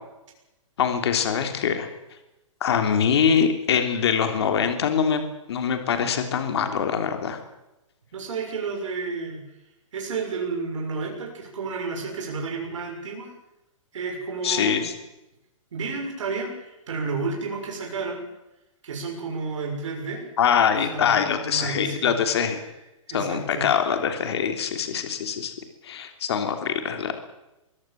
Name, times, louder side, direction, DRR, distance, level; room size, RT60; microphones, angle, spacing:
voice 1, 0.8-1.9 2.6-5.2 5.5-7.4 14.4-14.9 20.4-22.6 23.1-25.5 25.8-27.1, left 7 dB, 50° left, 6 dB, 3.3 m, -23 dB
voice 2, 8.1-9.4 9.9-13.3 13.9-14.8 15.7-18.2 18.8-20.2 20.9-21.1 21.4-22.2 23.1-23.7, right 4 dB, 65° right, 0 dB, 6.7 m, -31 dB
23.5 x 17.0 x 7.7 m, 0.95 s
hypercardioid pair, 170°, 17 cm